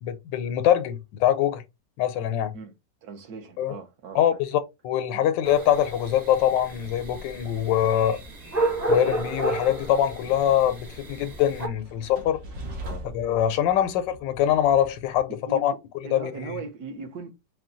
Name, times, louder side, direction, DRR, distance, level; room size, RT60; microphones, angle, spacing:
voice 1, 0.0-1.6 2.0-2.5 3.6-3.8 4.1-8.2 8.9-12.4 13.1-15.7 16.1-16.6, left 10 dB, 85° left, 1.3 m, -23 dB
voice 2, 3.0-4.2 5.1-5.2 12.8-13.1 15.3-15.6 16.0-17.3, right 4 dB, 65° right, 1.3 m, -38 dB
sound 1, 5.4-11.7, right 2 dB, 30° right, 0.8 m, -32 dB
Train, 6.9-15.2, equal, 85° right, 1.8 m, -43 dB
4.2 x 2.2 x 3.7 m
omnidirectional pair, 1.9 m